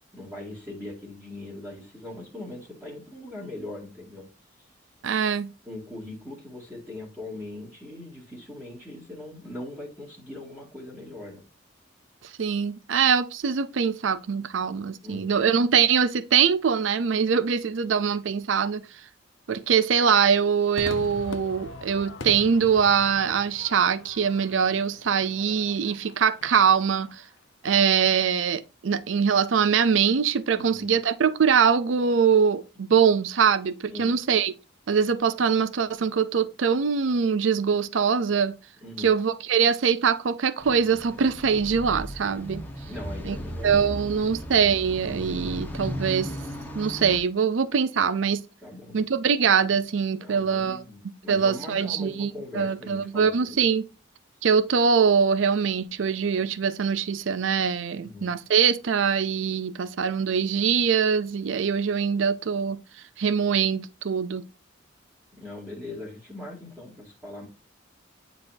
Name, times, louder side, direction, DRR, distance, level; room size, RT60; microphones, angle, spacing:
voice 1, 0.1-4.3 4.6-4.7 5.6-11.4 15.0-15.4 30.5-31.0 33.9-34.1 38.8-39.1 42.9-44.3 48.6-49.0 50.2-53.6 58.0-58.3 65.4-67.5, left 2 dB, 10° right, 2.1 m, -40 dB
voice 2, 5.0-5.5 12.4-18.8 19.5-27.1 27.6-34.5 34.9-38.6 39.0-42.6 43.3-43.4 43.6-46.3 46.7-48.4 48.9-50.8 51.3-53.8 54.4-62.8 63.2-64.4, right 6 dB, 75° right, 0.5 m, -23 dB
Crowd / Fireworks, 20.8-27.3, left 3 dB, 75° left, 0.8 m, -42 dB
sound 1, 40.6-47.2, equal, 10° left, 1.1 m, -36 dB
9.7 x 4.1 x 2.6 m
head